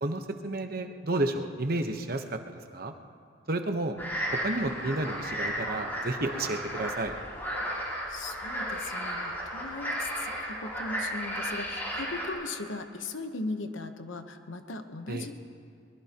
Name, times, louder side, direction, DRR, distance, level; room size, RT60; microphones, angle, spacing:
voice 1, 0.0-2.4 2.7-2.9 3.5-4.0 4.3-7.1 15.1-15.2, right 2 dB, 50° right, 6 dB, 1.0 m, -31 dB
sound 1, 4.0-12.3, equal, 10° left, 4.8 m, -34 dB
voice 2, 7.8-15.3, left 3 dB, 85° left, 7 dB, 1.0 m, -38 dB
22.5 x 21.5 x 3.0 m, 2.3 s
head